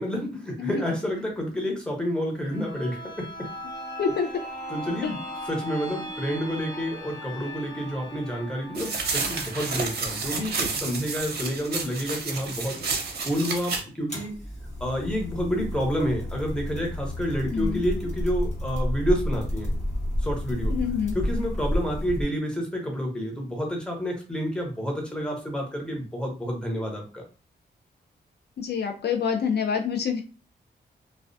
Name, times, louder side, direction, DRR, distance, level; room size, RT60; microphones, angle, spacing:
voice 1, 0.0-3.5 4.7-5.2 5.5-12.8 13.2-14.3 14.8-19.7 20.2-20.8 21.1-27.2, equal, 5° left, 0 dB, 0.8 m, -29 dB
sound 1, 2.4-12.0 12.3-12.4, equal, 20° left, 1.1 m, -39 dB
voice 2, 4.0-4.3 5.0-5.1 17.4-17.8 20.7-21.1 28.6-30.2, left 6 dB, 70° left, 4 dB, 0.4 m, -27 dB
sound 2, 8.8-13.8, right 4 dB, 60° right, 0.6 m, -30 dB
sound 3, 14.1-22.2, left 1 dB, 40° left, 1.0 m, -30 dB
2.3 x 2.1 x 2.5 m, 0.35 s
wide cardioid pair, 95°, 18 cm